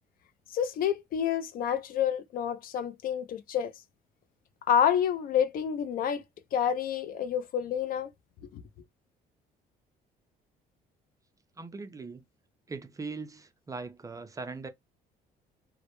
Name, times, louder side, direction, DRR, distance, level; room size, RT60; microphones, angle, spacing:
voice 1, 0.5-3.7 4.7-6.2 6.5-8.1 8.5-8.6, left 9 dB, 60° left, 0.4 m, -28 dB
voice 2, 11.6-12.2 12.7-14.7, right 4 dB, 20° right, 0.4 m, -40 dB
2.1 x 2.0 x 2.9 m
cardioid pair, 110°, 17 cm